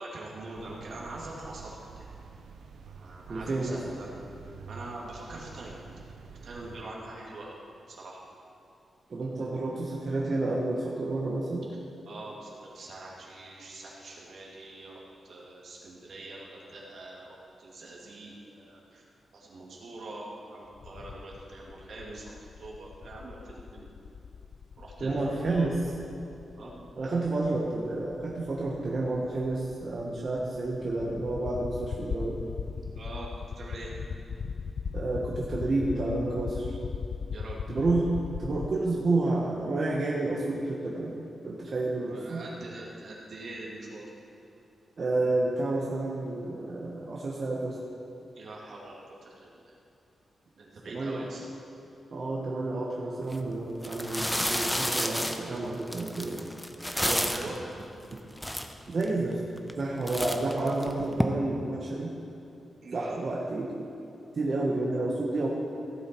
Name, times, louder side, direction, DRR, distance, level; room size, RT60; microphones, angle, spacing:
voice 1, 0.0-2.0 2.9-4.1 4.7-5.8 6.4-7.6 7.9-8.2 12.1-19.0 19.3-22.3 22.6-23.9 24.8-25.2 25.5-25.7 26.6-26.9 32.9-33.3 33.6-33.9 37.3-37.7 42.0-44.3 48.3-49.8 50.6-51.5 56.9-57.6 62.8-63.2, right 2 dB, 70° right, -4 dB, 2.6 m, -44 dB
sound 1, 0.5-6.8, right 5 dB, 90° right, 0.7 m, -48 dB
voice 2, 3.3-3.9 9.1-11.7 25.0-25.8 27.0-32.4 34.9-36.8 37.7-38.1 38.4-42.4 45.0-47.8 50.9-51.3 52.1-56.4 57.0-57.3 58.9-59.4 59.7-62.1 62.9-63.7 64.3-65.5, right 2 dB, 50° right, -4 dB, 1.4 m, -30 dB
sound 2, 20.8-38.7, left 6 dB, 65° left, 0.4 m, -39 dB
sound 3, 53.2-53.4 53.8-57.6 58.1-58.2 58.4-59.1 59.6-59.8 60.1-61.2, equal, 5° left, 0.8 m, -30 dB
16.0 x 7.5 x 4.6 m, 2.8 s
cardioid pair, 90°, 0 cm